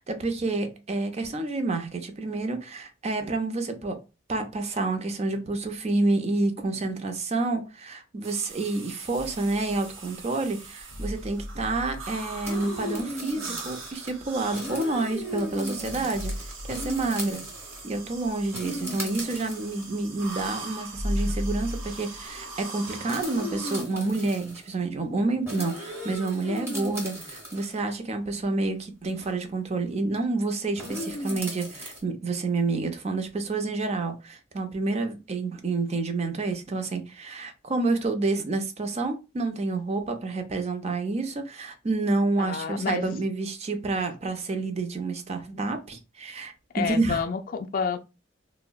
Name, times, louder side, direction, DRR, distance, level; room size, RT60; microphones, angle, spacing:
voice 1, 0.0-4.0 4.3-17.4 17.8-47.2, right 3 dB, 35° right, 0.5 m, -29 dB
sound 1, 8.2-23.8, right 3 dB, 85° right, 0.8 m, -42 dB
sound 2, 9.2-10.1 10.9-14.9 15.3-15.4 15.7-22.6, left 1 dB, 20° left, 0.7 m, -37 dB
sound 3, 12.4-14.1 14.4-17.9 18.5-19.8 20.6-20.7 21.3-21.4 21.6-21.9 23.1-24.7 25.5-27.8 29.2-29.3 30.8-32.0, equal, 15° right, 0.8 m, -36 dB
voice 2, 42.4-43.0 46.7-48.0, left 5 dB, 45° left, 0.3 m, -29 dB
3.6 x 2.0 x 2.3 m
head